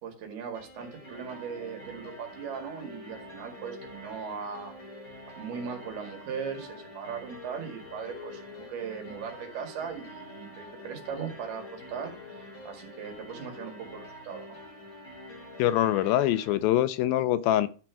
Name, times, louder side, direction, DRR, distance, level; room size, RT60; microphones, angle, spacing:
voice 1, 0.0-4.7 5.4-14.6, right 6 dB, 80° right, 4.0 m, -39 dB
sound 1, 0.5-16.5, left 1 dB, 25° left, 2.2 m, -46 dB
voice 2, 15.6-17.7, left 13 dB, 80° left, 2.2 m, -24 dB
12.0 x 4.4 x 5.9 m
omnidirectional pair, 4.4 m